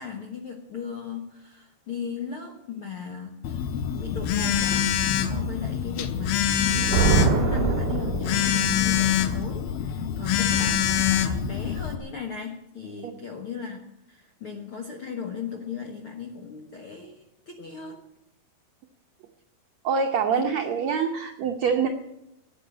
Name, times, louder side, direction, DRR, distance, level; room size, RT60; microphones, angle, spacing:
voice 1, 0.0-3.7 3.9-5.0 5.2-6.5 6.8-18.0 20.3-20.5, left 6 dB, 60° left, 2 dB, 1.4 m, -37 dB
Telephone, 3.4-12.0, left 9 dB, 85° left, 2.8 m, -25 dB
Thunder, 6.5-8.8, right 5 dB, 40° right, 1.6 m, -24 dB
voice 2, 19.8-21.9, right 6 dB, 75° right, 3 dB, 1.6 m, -25 dB
16.0 x 9.2 x 8.3 m, 0.84 s
omnidirectional pair, 4.4 m